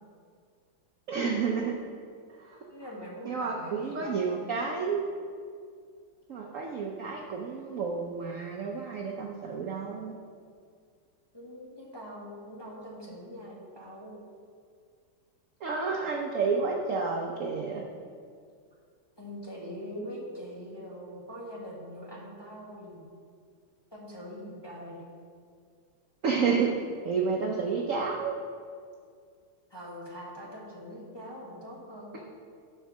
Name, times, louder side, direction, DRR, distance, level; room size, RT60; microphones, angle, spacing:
voice 1, 1.1-1.7 2.4-2.6 3.2-5.1 6.3-10.1 15.6-17.8 26.2-26.8 27.0-28.3, right 5 dB, 65° right, 0 dB, 0.8 m, -30 dB
voice 2, 2.7-4.9 11.3-14.1 19.2-23.0 23.9-25.1 29.7-32.3, equal, 15° left, -5 dB, 1.4 m, -43 dB
11.5 x 4.7 x 5.9 m, 2.1 s
omnidirectional pair, 2.3 m